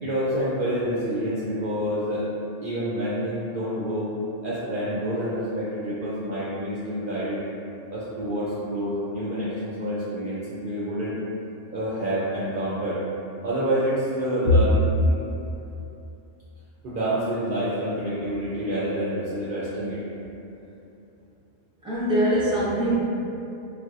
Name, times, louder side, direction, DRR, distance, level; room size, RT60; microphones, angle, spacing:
voice 1, 0.0-2.3 2.6-4.1 4.4-7.5 7.9-11.2 11.7-13.0 13.4-14.7 15.0-15.2 16.8-20.0, right 1 dB, 60° right, -9 dB, 0.6 m, -28 dB
voice 2, 21.8-23.0, left 1 dB, 5° right, -10 dB, 0.6 m, -22 dB
4.1 x 2.0 x 2.4 m, 2.8 s
omnidirectional pair, 1.2 m